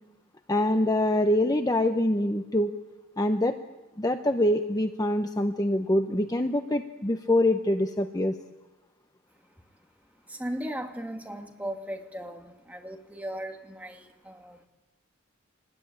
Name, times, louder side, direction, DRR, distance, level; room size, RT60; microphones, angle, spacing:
voice 1, 0.5-2.8 3.2-3.6 4.0-8.4, left 1 dB, 20° left, 6 dB, 0.9 m, -25 dB
voice 2, 10.3-14.7, equal, 10° right, 2 dB, 2.5 m, -37 dB
26.0 x 20.5 x 8.8 m, 1.1 s
head